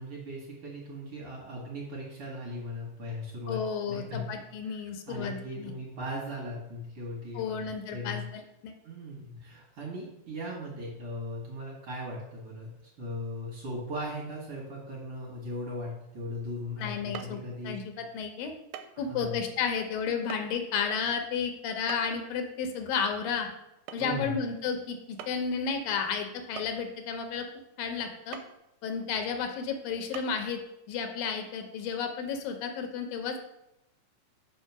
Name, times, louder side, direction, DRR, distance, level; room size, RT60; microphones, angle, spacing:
voice 1, 0.0-3.6 3.9-4.3 4.7-8.2 8.8-12.7 13.0-17.8 19.0-19.4 24.0-24.3, left 1 dB, 50° right, -4 dB, 2.2 m, -38 dB
voice 2, 3.5-5.7 7.3-8.8 16.8-17.4 17.6-18.5 19.0-23.5 23.9-27.5 27.8-28.4 28.8-30.6 30.9-33.4, left 6 dB, 80° left, 5 dB, 2.5 m, -32 dB
sound 1, 17.1-17.4 18.7-19.0 19.3-19.4 20.3-20.4 21.9-22.3 23.9-24.1 24.4-24.5 25.2-25.5 26.6-27.1 28.3-28.6 29.1-29.2 30.1-30.2, right 9 dB, 90° right, 2.3 m, -42 dB
5.5 x 5.0 x 6.0 m, 0.86 s
omnidirectional pair, 3.9 m